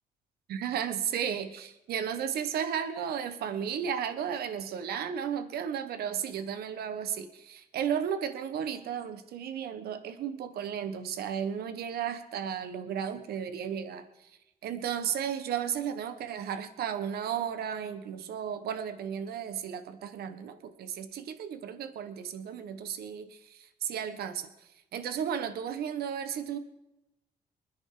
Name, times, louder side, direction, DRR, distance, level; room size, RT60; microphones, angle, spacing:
voice 1, 0.5-14.3 14.6-24.5 24.9-26.6, right 8 dB, 80° right, 10 dB, 1.1 m, -34 dB
24.5 x 10.0 x 3.7 m, 0.92 s
cardioid pair, 120°, 16 cm